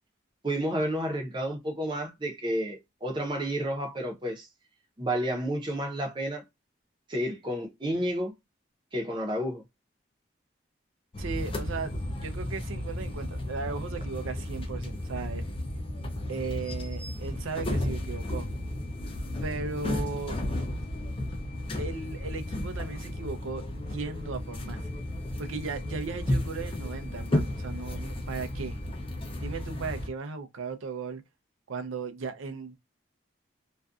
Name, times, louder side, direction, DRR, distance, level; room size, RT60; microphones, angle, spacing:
voice 1, 0.4-4.5 5.0-6.4 7.1-8.3 8.9-9.6, right 1 dB, 25° right, 0.6 m, -31 dB
sound 1, 11.1-30.1, left 1 dB, 25° left, 0.5 m, -33 dB
voice 2, 11.2-15.4 16.3-18.5 19.4-20.4 21.8-24.8 25.4-28.8 29.4-31.2 31.7-32.8, right 4 dB, 85° right, 0.5 m, -36 dB
2.5 x 2.2 x 2.3 m
head